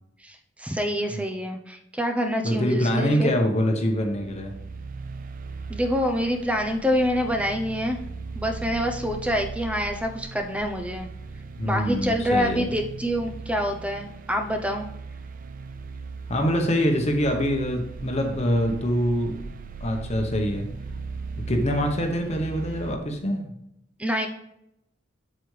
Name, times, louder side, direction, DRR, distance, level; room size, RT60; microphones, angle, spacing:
voice 1, 0.2-3.3 5.7-8.0 8.3-11.1 11.6-14.9 24.0-24.3, equal, 5° right, 4 dB, 0.7 m, -26 dB
voice 2, 2.4-4.5 11.6-12.7 16.3-19.4 19.8-20.7 21.5-23.5, equal, 35° left, 3 dB, 1.1 m, -24 dB
sound 1, 3.5-23.0, right 4 dB, 50° right, 0.6 m, -38 dB
8.2 x 7.8 x 3.3 m, 0.78 s
head